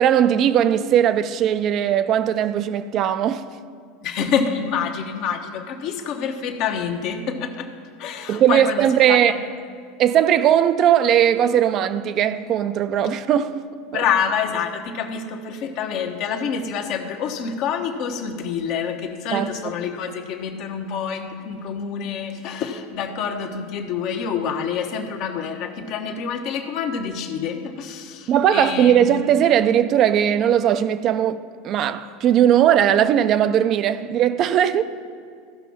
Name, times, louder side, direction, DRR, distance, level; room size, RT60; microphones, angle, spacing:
voice 1, 0.0-3.4 8.3-9.3 10.0-13.7 13.9-14.0 19.3-19.5 28.3-34.8, right 10 dB, 45° right, 0.5 m, -18 dB
voice 2, 4.0-7.7 8.0-9.4 13.9-29.1, left 7 dB, 55° left, 1.1 m, -27 dB
14.5 x 6.0 x 5.9 m
hypercardioid pair, 95°, 0 cm